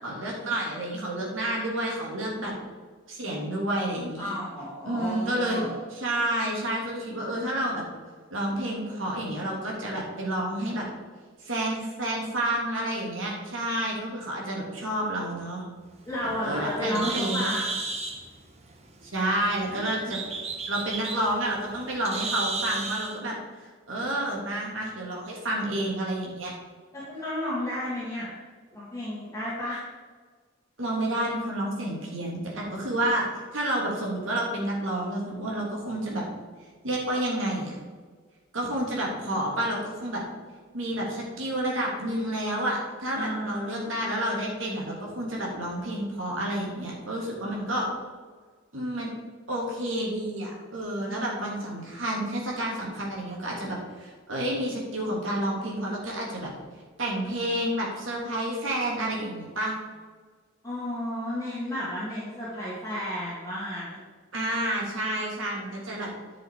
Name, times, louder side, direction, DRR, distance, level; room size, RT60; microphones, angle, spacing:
voice 1, 0.0-2.5 3.1-4.3 4.8-5.6 5.9-7.8 8.3-10.8 11.4-15.6 16.2-17.5 19.0-20.2 20.7-26.5 30.8-33.2 33.5-36.2 36.8-37.8 38.5-40.2 40.7-47.9 48.7-49.1 49.5-56.5 57.0-59.8 64.3-66.1, right 1 dB, 70° right, -2 dB, 3.1 m, -30 dB
voice 2, 4.2-5.7 16.1-17.7 19.7-19.8 26.9-28.3 28.7-29.8 43.1-44.3 47.4-47.7 51.1-51.5 60.6-64.0, left 1 dB, 15° left, -9 dB, 2.3 m, -33 dB
Bird, 15.9-23.2, right 4 dB, 30° right, 1.0 m, -34 dB
11.0 x 6.3 x 5.0 m, 1.5 s
head